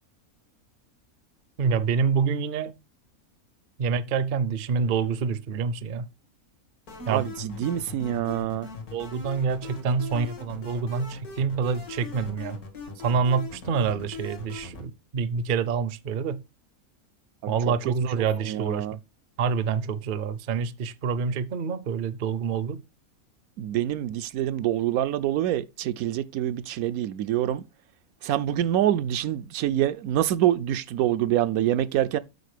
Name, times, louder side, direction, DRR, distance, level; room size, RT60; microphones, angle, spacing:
voice 1, 1.6-2.7 3.8-6.1 7.1-7.2 8.9-12.6 13.0-16.4 17.5-19.0 19.4-22.8, right 5 dB, 50° right, 0.6 m, -27 dB
sound 1, 6.9-14.9, left 4 dB, 85° left, 2.5 m, -40 dB
voice 2, 7.1-8.7 17.4-17.5 17.8-19.0 23.6-27.6 28.2-32.2, right 12 dB, 80° right, 1.0 m, -26 dB
8.2 x 4.9 x 4.9 m
omnidirectional pair, 1.5 m